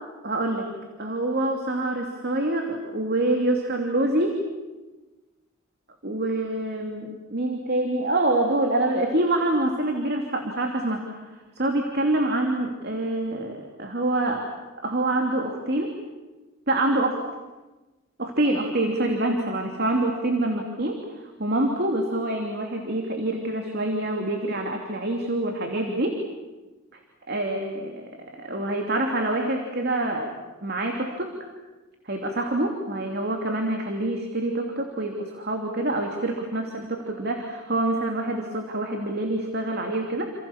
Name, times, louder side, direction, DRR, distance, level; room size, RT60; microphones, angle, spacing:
voice 1, 0.2-0.7 1.0-4.4 6.0-11.2 11.6-14.4 14.8-15.9 16.7-17.2 18.2-21.0 21.4-26.2 27.3-28.1 28.4-30.3 30.6-31.3 32.1-40.3, right 1 dB, 50° right, 3 dB, 2.9 m, -26 dB
29.0 x 28.0 x 7.2 m, 1.2 s
head